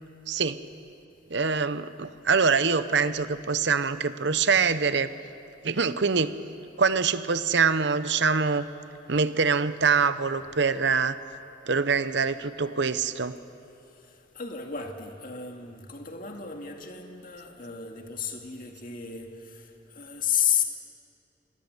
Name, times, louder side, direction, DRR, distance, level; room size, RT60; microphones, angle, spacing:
voice 1, 0.3-0.6 1.3-5.1 5.6-6.4 6.8-8.7 9.1-11.2 11.7-13.4, right 5 dB, 60° right, 13 dB, 0.8 m, -24 dB
voice 2, 14.3-20.6, left 8 dB, 45° left, 3 dB, 2.2 m, -32 dB
27.0 x 19.0 x 8.1 m, 2.9 s
head